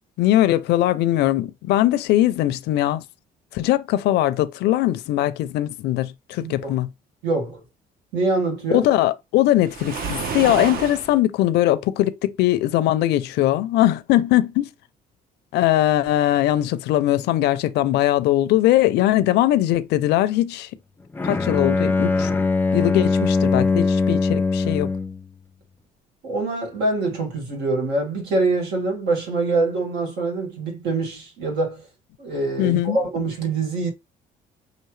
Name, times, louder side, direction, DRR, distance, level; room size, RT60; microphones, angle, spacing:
voice 1, 0.2-3.0 3.5-6.9 8.7-14.7 15.5-20.7 21.2-22.3 22.7-24.9 32.6-33.0, left 14 dB, 80° left, 0.5 m, -20 dB
voice 2, 6.4-6.7 7.2-7.6 8.1-8.9 26.2-31.8 32.2-33.9, right 3 dB, 85° right, 2.0 m, -24 dB
Waves surf, 9.6-11.1, right 5 dB, 60° right, 1.0 m, -29 dB
Bowed string instrument, 21.1-25.2, left 3 dB, 10° left, 0.4 m, -21 dB
5.7 x 2.5 x 3.1 m
cardioid pair, 110°, 17 cm